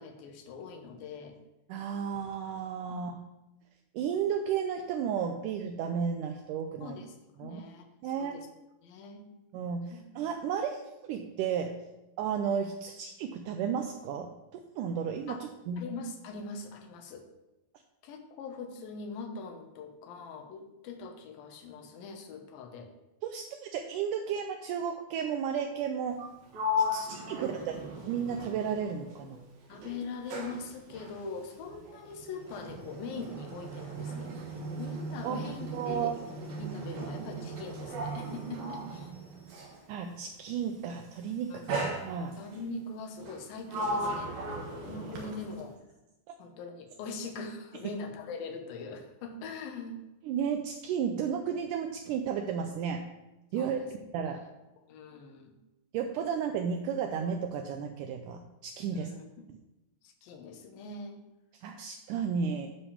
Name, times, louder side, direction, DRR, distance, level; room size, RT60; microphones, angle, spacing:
voice 1, 0.0-1.4 2.9-3.0 6.8-7.1 7.4-8.5 8.8-9.2 15.3-15.4 15.8-17.3 18.0-22.9 27.3-27.7 29.7-36.2 36.6-39.1 41.5-41.8 42.4-44.3 44.7-45.7 46.4-50.0 53.6-53.9 54.3-54.4 54.8-55.6 58.9-59.5 60.0-61.2, left 3 dB, 85° left, 4 dB, 2.7 m, -42 dB
voice 2, 1.7-3.2 3.9-7.0 7.4-7.6 8.0-8.4 9.5-11.7 12.2-14.3 14.5-15.4 15.7-15.9 23.2-26.2 26.9-27.8 28.1-29.4 35.2-35.4 35.7-36.3 39.9-41.6 42.0-42.3 50.3-53.0 53.5-53.8 54.1-54.4 55.9-59.1 61.6-62.7, right 7 dB, 80° right, 4 dB, 1.9 m, -33 dB
Sliding door, 26.2-29.4 29.7-39.9 40.8-41.1 41.7-42.6 43.2-45.7, equal, 65° right, 2.5 m, -37 dB
9.9 x 3.5 x 7.1 m, 0.98 s
omnidirectional pair, 4.2 m